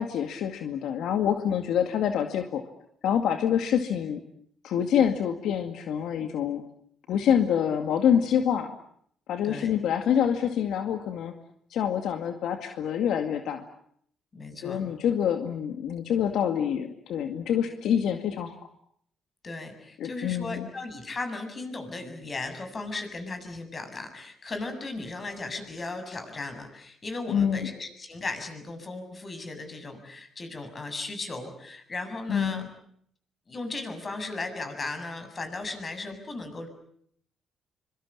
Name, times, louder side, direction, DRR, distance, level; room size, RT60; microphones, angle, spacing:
voice 1, 0.0-2.6 3.0-4.2 4.6-6.6 7.1-8.7 9.3-11.3 11.7-13.6 14.6-18.6 20.0-20.7 27.3-27.7 32.3-32.7, left 8 dB, 80° left, 6 dB, 2.2 m, -26 dB
voice 2, 9.4-9.8 14.3-14.9 19.4-32.6 33.5-36.7, left 3 dB, 35° left, 7 dB, 7.4 m, -36 dB
25.0 x 24.5 x 8.8 m, 0.67 s
cardioid pair, 90°, 0 cm